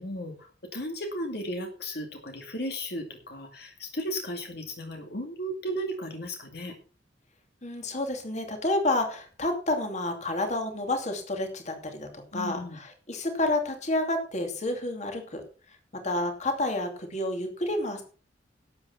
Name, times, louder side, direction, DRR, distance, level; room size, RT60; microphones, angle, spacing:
voice 1, 0.0-6.7 12.3-12.8, equal, 60° left, 3 dB, 2.2 m, -35 dB
voice 2, 7.6-18.0, left 2 dB, 40° left, 5 dB, 2.7 m, -30 dB
12.0 x 8.6 x 5.7 m, 0.39 s
head